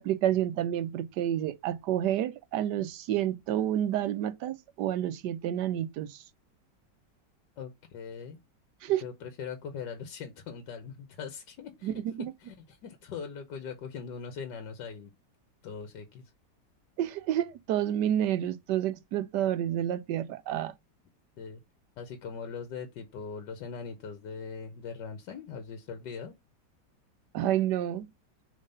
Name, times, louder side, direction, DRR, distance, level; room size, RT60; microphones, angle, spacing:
voice 1, 0.0-6.2 8.8-9.0 11.8-12.2 17.0-20.7 27.3-28.1, right 11 dB, 75° right, 1.2 m, -29 dB
voice 2, 7.6-8.4 9.0-12.0 12.4-15.1 15.6-16.2 21.4-21.6 22.0-26.3, left 6 dB, 75° left, 1.5 m, -41 dB
5.1 x 3.7 x 5.4 m
omnidirectional pair, 1.9 m